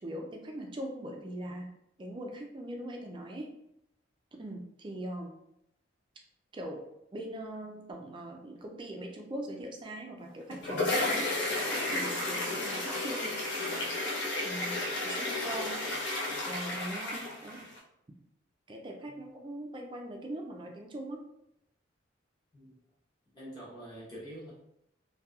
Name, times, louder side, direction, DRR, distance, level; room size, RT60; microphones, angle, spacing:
voice 1, 0.0-1.7 2.0-3.5 4.4-5.3 6.5-6.8 7.1-11.6 11.9-14.2 14.4-14.8 15.0-15.8 16.5-17.6 18.7-21.2, right 1 dB, 25° right, 1 dB, 0.3 m, -41 dB
sound 1, 10.3-17.8, left 2 dB, 65° left, 0.6 m, -33 dB
voice 2, 23.3-24.5, right 1 dB, 20° left, -8 dB, 0.9 m, -45 dB
2.8 x 2.2 x 2.3 m, 0.79 s
head